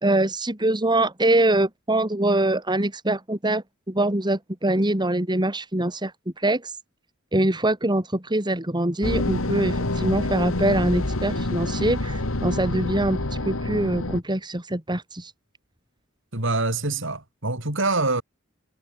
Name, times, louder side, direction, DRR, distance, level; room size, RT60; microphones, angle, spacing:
voice 1, 0.0-6.1 6.4-6.7 7.3-13.2 13.4-15.3, right 1 dB, 20° right, 3.3 m, -23 dB
sound 1, 9.0-14.2, left 2 dB, 90° left, 2.2 m, -27 dB
voice 2, 16.3-18.2, right 3 dB, 65° right, 6.4 m, -25 dB
head